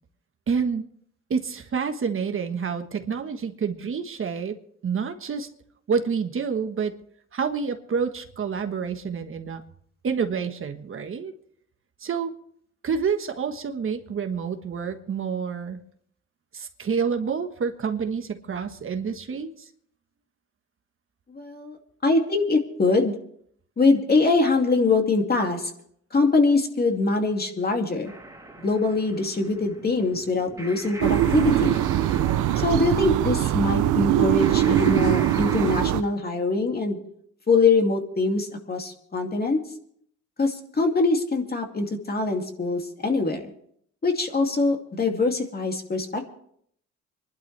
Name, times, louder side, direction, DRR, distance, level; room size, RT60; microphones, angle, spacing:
voice 1, 0.5-0.9 1.3-4.6 4.8-5.5 5.9-7.0 7.3-9.6 10.0-11.3 12.0-12.3 12.8-15.8 16.5-19.7, right 6 dB, 45° right, 6 dB, 1.4 m, -28 dB
voice 2, 21.3-21.8 22.0-23.1 23.8-25.7 26.1-28.1 28.6-31.8 32.6-37.0 37.5-39.6 40.4-43.5 44.0-46.3, left 3 dB, 30° left, 3 dB, 2.5 m, -23 dB
sound 1, 28.0-35.8, right 2 dB, 10° right, 2.9 m, -42 dB
sound 2, 31.0-36.0, right 12 dB, 90° right, 0.7 m, -22 dB
26.0 x 12.0 x 3.3 m, 0.65 s
cardioid pair, 90°, 30 cm